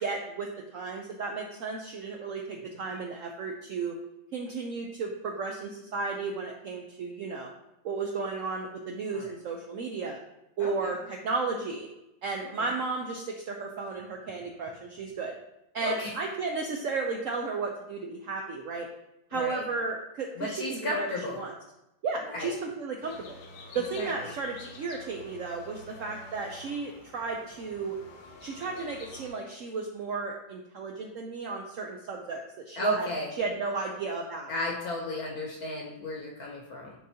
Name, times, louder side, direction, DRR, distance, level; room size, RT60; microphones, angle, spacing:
voice 1, 0.0-4.0 4.3-7.5 7.8-10.2 10.6-11.9 12.2-15.3 15.7-18.9 19.3-21.5 22.0-23.4 23.7-28.0 28.4-33.1 33.4-34.5, right 4 dB, 75° right, 1 dB, 0.7 m, -34 dB
voice 2, 10.6-11.0 12.6-12.7 15.8-16.2 19.3-19.6 20.4-21.4 22.2-22.5 24.0-24.3 32.8-33.3 34.5-36.9, equal, 60° left, -1 dB, 1.1 m, -33 dB
sound 1, 23.0-29.3, left 2 dB, 90° left, 1.8 m, -48 dB
10.0 x 3.9 x 2.8 m, 0.90 s
omnidirectional pair, 2.1 m